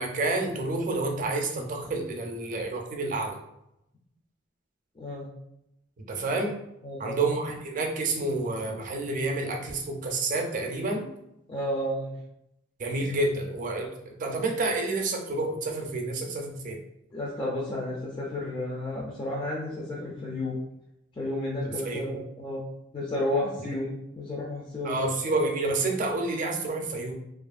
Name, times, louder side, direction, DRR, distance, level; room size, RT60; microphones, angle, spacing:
voice 1, 0.0-3.4 6.1-6.5 7.0-11.1 12.8-16.8 21.8-22.2 24.8-27.1, right 2 dB, 45° right, 2 dB, 0.4 m, -29 dB
voice 2, 5.0-5.3 6.8-7.2 11.5-12.1 17.1-20.6 21.1-22.6 22.9-25.1, left 1 dB, 25° left, -5 dB, 0.3 m, -32 dB
2.6 x 2.4 x 2.3 m, 0.83 s
head